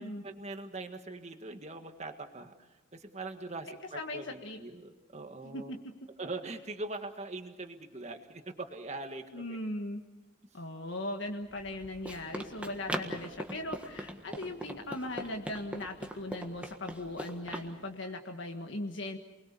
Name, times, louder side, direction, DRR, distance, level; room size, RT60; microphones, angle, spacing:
voice 1, 0.0-5.7 6.2-9.6, right 2 dB, 35° right, 6 dB, 1.8 m, -42 dB
voice 2, 3.7-4.6 5.4-5.8 9.3-10.0 10.5-19.2, left 1 dB, 65° left, 3 dB, 1.6 m, -39 dB
Run, 11.5-17.7, right 1 dB, 5° right, 1.6 m, -41 dB
28.5 x 21.0 x 6.9 m, 1.1 s
head